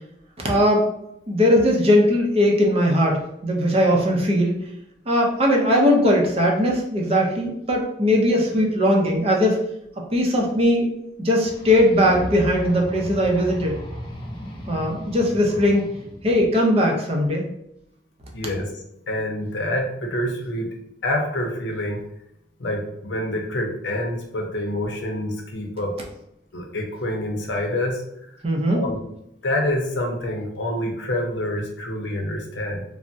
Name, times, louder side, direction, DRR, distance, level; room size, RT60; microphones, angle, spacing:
voice 1, 0.4-0.9 1.3-4.6 5.1-9.6 10.0-10.9 11.2-13.8 14.7-15.9 16.2-17.5 28.4-28.8, equal, 35° right, 0 dB, 0.5 m, -19 dB
sound 1, 11.4-16.5, equal, 25° left, 0.5 m, -36 dB
voice 2, 18.3-20.7 21.0-22.0 22.6-25.9 26.5-28.0 28.7-29.0 29.4-32.8, left 1 dB, 80° left, 1 dB, 0.6 m, -27 dB
3.3 x 2.0 x 2.6 m, 0.79 s
head